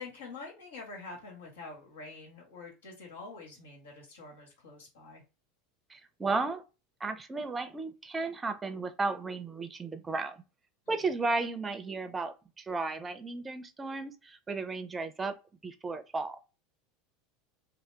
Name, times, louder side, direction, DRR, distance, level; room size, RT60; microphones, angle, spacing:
voice 1, 0.0-5.2 10.9-11.0, left 3 dB, 85° left, 1.4 m, -46 dB
voice 2, 5.9-6.6 7.0-10.4 10.9-15.4 15.6-16.4, right 3 dB, 20° right, 0.5 m, -34 dB
2.8 x 2.1 x 3.2 m
hypercardioid pair, 90°, 0 cm